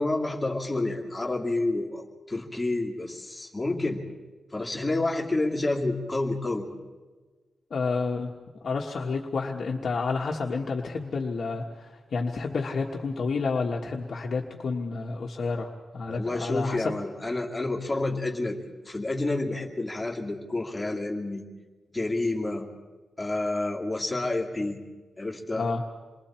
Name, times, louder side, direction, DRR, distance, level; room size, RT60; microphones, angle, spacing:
voice 1, 0.0-4.0 4.5-6.7 16.0-21.5 21.9-22.7 23.2-24.8 25.2-25.7, left 2 dB, 10° left, -2 dB, 2.5 m, -29 dB
voice 2, 7.7-8.3 8.6-16.8 25.6-25.8, left 4 dB, 50° left, -1 dB, 1.3 m, -30 dB
28.0 x 22.0 x 4.4 m, 1.3 s
wide cardioid pair, 155°, 0 cm